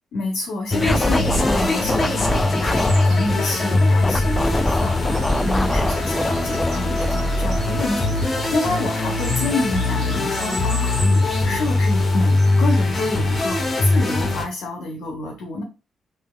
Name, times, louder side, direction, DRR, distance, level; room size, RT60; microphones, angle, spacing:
voice 1, 0.1-15.6, left 2 dB, 70° left, 1 dB, 0.8 m, -28 dB
sound 1, 0.7-14.4, left 2 dB, 40° left, 0.9 m, -21 dB
Scratching (performance technique), 0.8-3.1 4.0-8.3, left 1 dB, 15° left, 0.3 m, -25 dB
sound 2, 2.7-14.3, right 1 dB, 65° right, 1.2 m, -38 dB
3.4 x 2.7 x 2.4 m, 0.30 s
hypercardioid pair, 45°, 0 cm